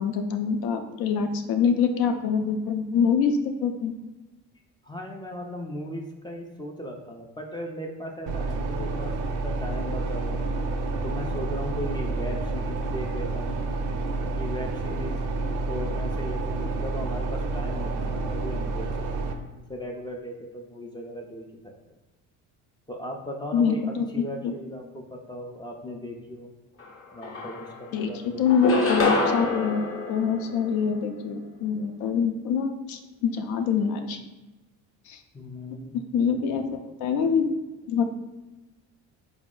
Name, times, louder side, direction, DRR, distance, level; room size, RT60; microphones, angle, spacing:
voice 1, 0.0-3.9 23.5-24.5 27.9-29.8 30.1-34.2 35.1-35.2 36.1-37.5 37.9-38.2, left 6 dB, 75° left, 6 dB, 0.5 m, -25 dB
voice 2, 4.8-10.5 11.0-13.6 14.2-15.2 15.6-18.9 19.2-19.3 19.7-21.7 22.9-26.5 27.1-28.7 35.3-36.0, equal, 15° left, 0 dB, 0.3 m, -37 dB
sound 1, 8.3-19.3, right 3 dB, 60° right, 0.5 m, -29 dB
sound 2, 26.8-26.9 27.2-28.0 28.5-31.1, left 3 dB, 35° left, 0.7 m, -26 dB
4.0 x 2.0 x 3.6 m, 1.1 s
cardioid pair, 90°, 37 cm